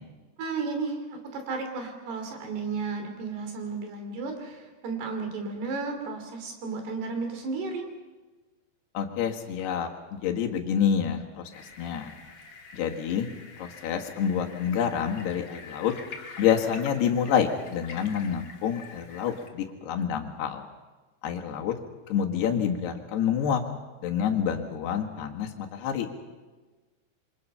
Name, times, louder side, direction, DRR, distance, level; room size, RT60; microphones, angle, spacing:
voice 1, 0.4-7.8, right 4 dB, 80° right, 5 dB, 5.0 m, -33 dB
voice 2, 9.0-9.9 10.2-12.1 12.7-13.3 13.6-15.9 16.4-20.7 21.2-21.8 22.1-23.6 24.0-26.1, left 8 dB, 80° left, 2 dB, 3.7 m, -27 dB
sound 1, 11.5-19.5, left 4 dB, 40° left, 1.9 m, -46 dB
27.0 x 24.5 x 5.6 m, 1.3 s
omnidirectional pair, 4.6 m